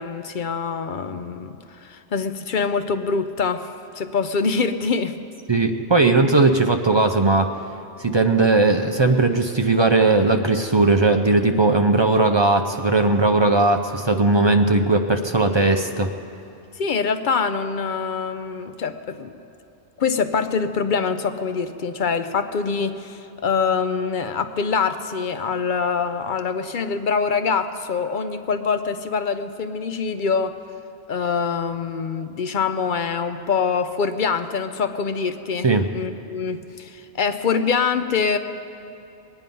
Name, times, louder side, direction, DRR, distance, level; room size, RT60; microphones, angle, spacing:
voice 1, 0.0-3.7 4.0-5.2 16.8-19.3 20.0-30.6 31.1-35.7 35.9-38.4, left 5 dB, 55° left, 9 dB, 0.7 m, -24 dB
voice 2, 5.5-7.5 8.0-16.1 35.6-35.9, right 3 dB, 35° right, 5 dB, 0.5 m, -18 dB
21.0 x 9.4 x 5.4 m, 2.8 s
omnidirectional pair, 1.2 m